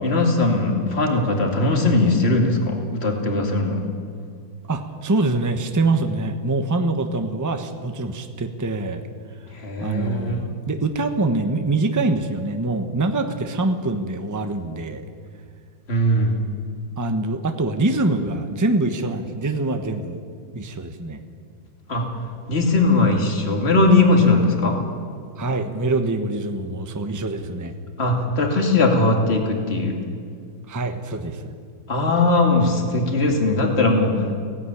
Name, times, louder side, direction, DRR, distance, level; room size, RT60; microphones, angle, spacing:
voice 1, 0.0-3.8 9.6-10.4 15.9-16.4 21.9-22.0 22.5-24.8 28.0-29.9 31.9-34.1, left 2 dB, 30° left, 2 dB, 2.6 m, -19 dB
voice 2, 4.7-9.0 9.8-15.0 17.0-20.2 20.5-21.2 25.4-27.7 30.7-31.6, right 2 dB, 15° right, 6 dB, 0.8 m, -24 dB
17.0 x 16.5 x 10.0 m, 2.1 s
omnidirectional pair, 2.1 m